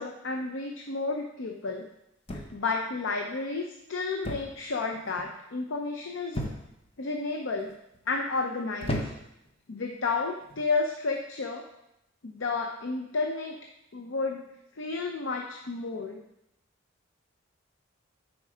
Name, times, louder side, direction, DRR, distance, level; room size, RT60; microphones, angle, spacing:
voice 1, 0.0-1.9 2.3-6.4 7.0-7.7 8.1-9.0 9.7-11.6 12.2-13.6 13.9-14.4 14.7-16.2, left 3 dB, 75° left, 3 dB, 0.6 m, -31 dB
sound 1, 2.3-2.8 4.2-4.6 4.9-5.3 6.3-6.9 7.6-8.0 8.8-9.5 10.4-10.7, left 1 dB, 30° left, 0.9 m, -35 dB
8.4 x 4.5 x 5.0 m, 0.85 s
head